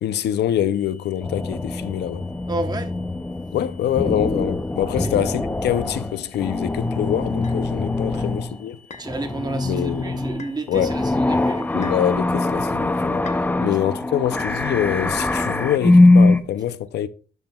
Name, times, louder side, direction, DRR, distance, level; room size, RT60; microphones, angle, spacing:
voice 1, 0.0-2.3 3.5-8.8 9.6-10.2 10.7-11.0 11.7-13.2 13.6-17.1, left 11 dB, 80° left, 0.4 m, -25 dB
sound 1, 0.7-12.2, left 4 dB, 60° left, 3.6 m, -55 dB
sound 2, 1.2-8.6 8.9-16.4, left 2 dB, 10° left, 0.4 m, -22 dB
voice 2, 2.5-2.9 5.0-5.1 8.1-8.3 9.0-11.8 13.5-13.7, right 2 dB, 25° right, 0.9 m, -31 dB
sound 3, 7.4-7.6 8.9-9.2 10.4-10.6 11.8-12.1 13.2-13.5, left 5 dB, 45° left, 0.7 m, -41 dB
10.5 x 6.0 x 2.2 m
wide cardioid pair, 135°, 17 cm